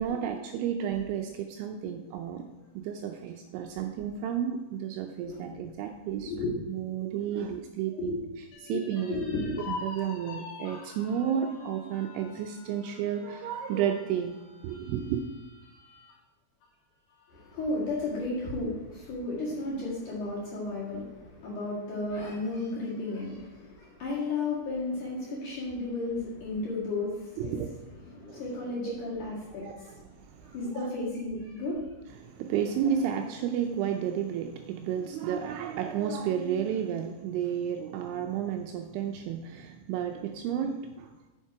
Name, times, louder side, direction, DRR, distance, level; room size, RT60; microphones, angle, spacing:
voice 1, 0.0-2.4 2.8-6.3 6.7-8.1 8.6-9.2 9.7-15.2 27.4-27.7 28.3-28.4 28.8-28.9 29.6-30.9 32.2-41.3, right 8 dB, 85° right, 4 dB, 2.8 m, -32 dB
voice 2, 5.3-5.6 6.2-6.5 7.9-8.2 8.7-8.8 9.1-9.6 17.3-27.5 28.0-30.0 30.4-31.8, left 2 dB, 50° left, -7 dB, 2.6 m, -33 dB
sound 1, 8.5-16.2 16.6-16.7 17.1-17.8, left 4 dB, 75° left, 3.6 m, -45 dB
7.3 x 7.2 x 4.7 m, 1.1 s
omnidirectional pair, 5.8 m